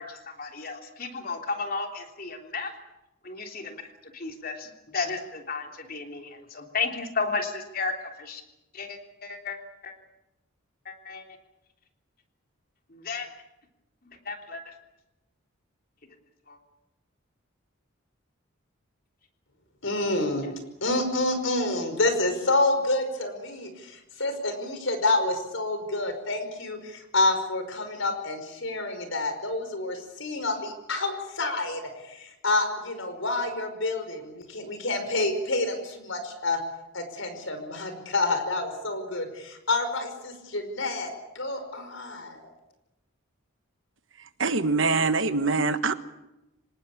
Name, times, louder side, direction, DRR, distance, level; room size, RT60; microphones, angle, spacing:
voice 1, 0.0-2.8 3.2-8.4 8.7-9.6 9.8-9.9 10.8-11.2 12.9-13.3 14.0-14.7 16.5-16.6 20.4-20.6, left 4 dB, 45° left, 4 dB, 3.3 m, -34 dB
voice 2, 19.8-20.5 20.8-36.6 36.9-42.5, left 2 dB, 65° left, 8 dB, 5.3 m, -28 dB
voice 3, 44.2-45.9, right 4 dB, 65° right, 11 dB, 1.4 m, -24 dB
26.0 x 19.0 x 8.5 m, 0.92 s
head